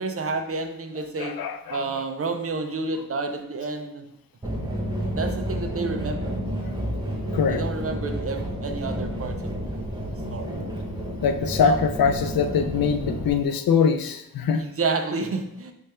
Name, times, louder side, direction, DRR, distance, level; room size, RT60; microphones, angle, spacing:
voice 1, 0.0-1.4 1.7-4.1 5.2-6.3 7.5-10.0 10.3-10.5 11.6-11.8 14.5-15.7, right 3 dB, 40° right, 6 dB, 0.5 m, -30 dB
voice 2, 1.2-2.1 7.3-7.6 11.2-14.6, left 6 dB, 85° left, 8 dB, 0.5 m, -23 dB
sound 1, 4.4-13.3, equal, 10° right, 0.9 m, -30 dB
3.3 x 3.3 x 4.3 m, 0.80 s
wide cardioid pair, 115°, 34 cm